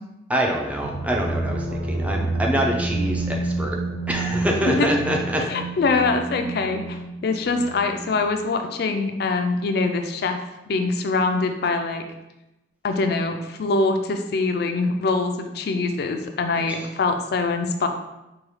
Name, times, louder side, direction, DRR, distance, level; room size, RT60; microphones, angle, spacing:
voice 1, 0.3-3.8 4.1-5.4, equal, 10° right, 0 dB, 0.5 m, -25 dB
sound 1, 0.8-8.5, right 2 dB, 85° right, 0.6 m, -29 dB
voice 2, 5.5-10.4 10.7-12.0 12.8-17.9, left 3 dB, 60° left, 6 dB, 0.4 m, -23 dB
4.6 x 2.3 x 3.2 m, 0.95 s
head